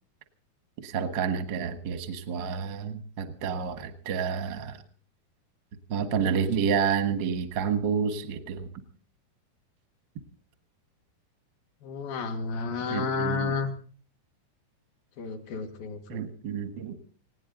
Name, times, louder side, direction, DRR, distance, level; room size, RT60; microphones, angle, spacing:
voice 1, 0.8-4.8 5.9-8.7 12.9-13.5 16.1-16.9, right 6 dB, 60° right, 8 dB, 1.1 m, -29 dB
voice 2, 11.8-13.7 15.2-16.2, left 4 dB, 70° left, 6 dB, 3.5 m, -31 dB
20.0 x 17.0 x 3.9 m, 0.42 s
omnidirectional pair, 4.5 m